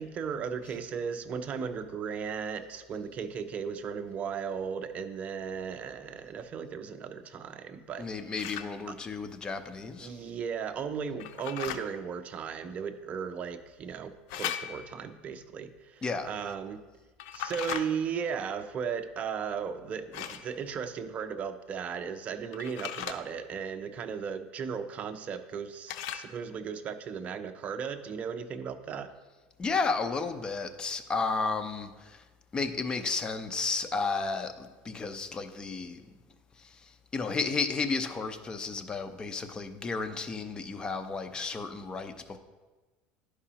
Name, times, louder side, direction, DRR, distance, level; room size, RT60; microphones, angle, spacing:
voice 1, 0.0-8.3 8.9-9.0 10.0-16.8 17.3-29.1, right 6 dB, 35° right, 10 dB, 0.5 m, -36 dB
voice 2, 8.0-10.1 16.0-16.3 29.6-32.2 32.5-36.0 37.1-42.4, left 4 dB, 20° left, 8 dB, 0.6 m, -32 dB
sound 1, 8.4-8.7 11.2-11.8 14.3-15.0 17.2-17.8 20.1-20.5 22.5-23.2 25.9-26.3, left 10 dB, 75° left, 0.5 m, -37 dB
11.0 x 4.9 x 2.8 m, 1.3 s
supercardioid pair, 120°, 4 cm